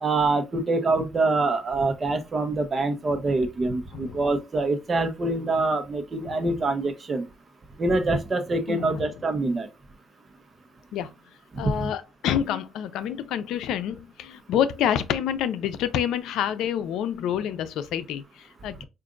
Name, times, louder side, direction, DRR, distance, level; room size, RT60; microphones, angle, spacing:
voice 1, 0.0-7.3 7.8-9.7 11.6-11.9, right 2 dB, 35° right, 0.9 m, -25 dB
voice 2, 8.7-9.1 10.9-11.1 11.6-18.8, left 9 dB, 85° left, 0.4 m, -28 dB
4.9 x 2.5 x 2.4 m
cardioid pair, 90°, 0 cm